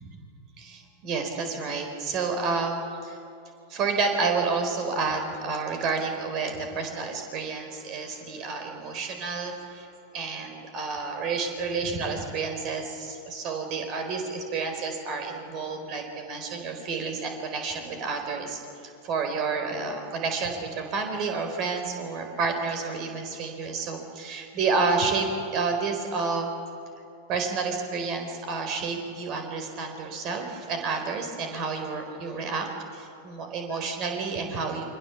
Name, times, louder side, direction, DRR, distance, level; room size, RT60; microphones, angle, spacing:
voice 1, 0.6-3.2 3.7-9.9 10.1-26.5 27.3-34.8, right 4 dB, 35° right, 5 dB, 4.3 m, -30 dB
28.5 x 24.0 x 7.2 m, 2.7 s
figure-of-eight pair, 90°, 0 cm